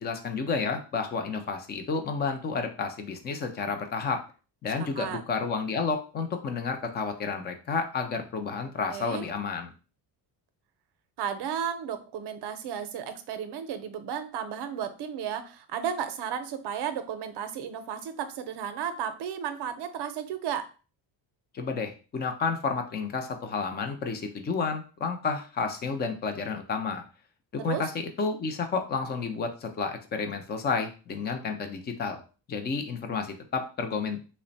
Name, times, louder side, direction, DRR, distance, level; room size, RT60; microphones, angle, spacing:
voice 1, 0.0-4.2 4.6-9.7 21.5-27.0 27.5-27.9 28.2-32.2 32.5-34.2, left 5 dB, 25° left, 6 dB, 0.3 m, -31 dB
voice 2, 8.9-9.3 11.2-20.7 27.6-27.9, right 8 dB, 60° right, 10 dB, 0.6 m, -34 dB
3.2 x 2.1 x 3.9 m, 0.35 s
cardioid pair, 150°, 46 cm